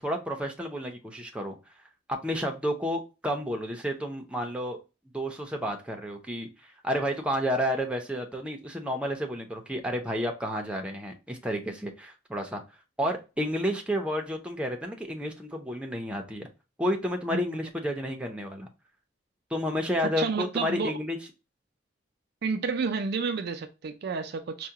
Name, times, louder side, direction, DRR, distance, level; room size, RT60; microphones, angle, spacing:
voice 1, 0.0-1.6 2.1-4.8 5.1-6.5 6.8-12.6 13.0-16.5 16.8-18.7 19.5-21.2, equal, 5° right, 0.6 m, -31 dB
voice 2, 17.3-17.6 20.0-21.0 22.4-24.7, right 5 dB, 60° right, 0.4 m, -30 dB
4.6 x 2.2 x 2.7 m
head